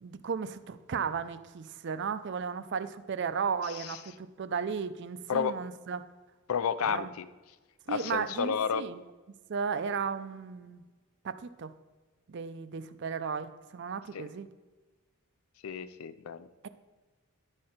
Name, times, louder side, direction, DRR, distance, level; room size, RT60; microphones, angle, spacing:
voice 1, 0.0-6.0 6.8-7.1 7.9-9.0 9.5-10.8 11.2-11.7 12.3-14.5, right 6 dB, 50° right, 12 dB, 0.4 m, -35 dB
voice 2, 3.7-4.0 5.3-5.6 6.5-7.3 7.9-8.8 14.1-14.3 15.6-16.5, left 7 dB, 75° left, 14 dB, 0.4 m, -31 dB
10.5 x 4.4 x 5.0 m, 1.3 s
head